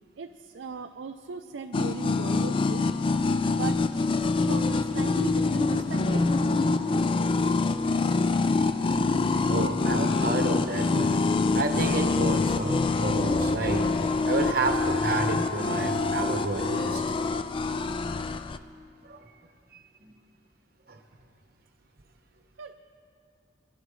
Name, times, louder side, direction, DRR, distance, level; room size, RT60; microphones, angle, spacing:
voice 1, 0.2-2.9 3.4-3.8 4.4-6.3 22.6-22.7, right 4 dB, 75° right, 4 dB, 0.5 m, -37 dB
sound 1, 1.7-18.6, left 3 dB, 25° left, 0.3 m, -25 dB
voice 2, 9.5-11.2 11.5-17.0 19.0-19.2 20.0-20.1 20.9-21.0, right 2 dB, 50° right, 4 dB, 1.1 m, -30 dB
24.0 x 11.0 x 3.2 m, 2.3 s
head